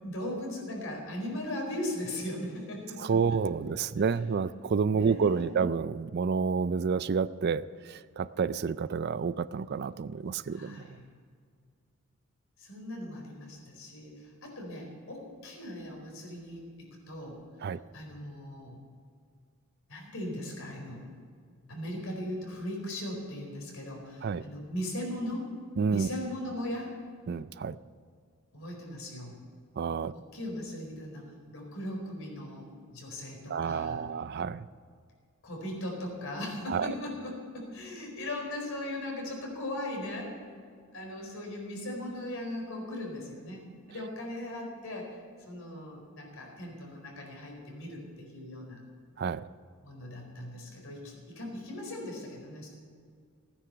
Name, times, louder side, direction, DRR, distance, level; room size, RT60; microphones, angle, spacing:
voice 1, 0.0-3.2 3.4-3.5 4.0-4.2 4.9-5.6 10.5-11.0 12.6-17.4 17.9-18.8 19.9-21.0 21.7-25.5 25.9-26.9 28.5-29.4 30.1-34.0 35.4-40.4 40.9-45.1 45.4-48.8 49.8-52.7, left 1 dB, 70° left, 0 dB, 4.6 m, -38 dB
voice 2, 3.0-10.9 17.6-17.8 24.2-24.4 25.8-26.1 27.3-27.8 29.8-30.1 33.5-34.7 36.7-36.9 49.2-49.4, right 5 dB, 50° right, 16 dB, 0.4 m, -29 dB
16.5 x 9.7 x 6.8 m, 2.1 s
head